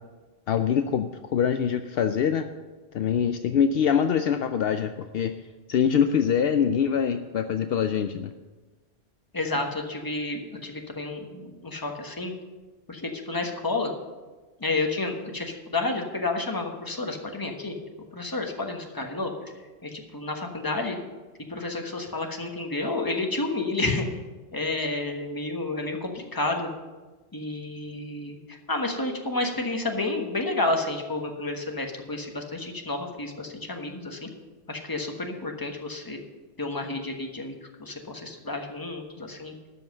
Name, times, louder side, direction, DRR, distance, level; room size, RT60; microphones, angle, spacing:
voice 1, 0.5-2.5 2.9-5.3 5.7-8.3, left 7 dB, 70° left, 8 dB, 0.7 m, -24 dB
voice 2, 9.3-12.3 12.9-13.9 14.6-17.7 18.1-19.3 19.8-21.0 21.5-24.1 24.5-26.7 27.3-34.3 34.7-36.2 36.6-39.5, left 2 dB, 20° left, 2 dB, 1.3 m, -30 dB
12.5 x 5.6 x 7.7 m, 1.2 s
omnidirectional pair, 1.1 m